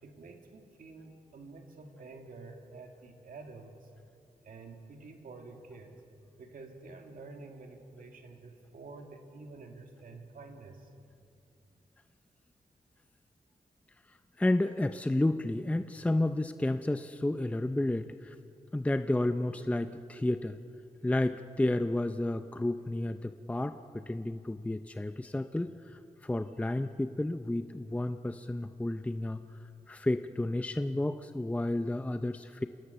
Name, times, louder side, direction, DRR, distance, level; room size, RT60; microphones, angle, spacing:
voice 1, 0.0-3.9 4.4-5.9 6.4-10.9, right 3 dB, 75° right, 3 dB, 2.2 m, -49 dB
voice 2, 14.4-18.3 18.7-20.6 21.0-29.4 29.9-32.7, left 1 dB, 10° left, 9 dB, 0.5 m, -31 dB
27.0 x 18.5 x 6.9 m, 2.5 s
wide cardioid pair, 110°, 14 cm